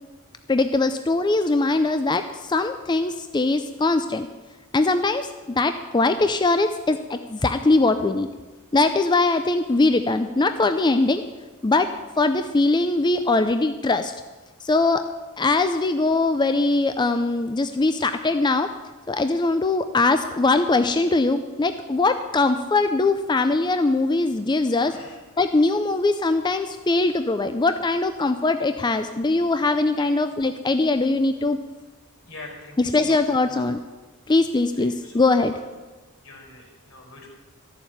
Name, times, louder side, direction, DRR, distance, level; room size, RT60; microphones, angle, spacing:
voice 1, 0.5-4.3 4.7-8.3 8.7-11.2 11.6-11.9 12.2-14.1 14.6-15.0 15.4-18.7 19.1-24.9 25.4-31.6 32.8-33.8 34.3-35.5, left 3 dB, 20° left, 9 dB, 0.5 m, -21 dB
voice 2, 24.8-25.2 30.0-30.1 32.3-33.6 34.8-35.6 36.2-37.3, left 2 dB, 75° left, 0 dB, 4.8 m, -44 dB
13.5 x 7.1 x 9.4 m, 1.2 s
head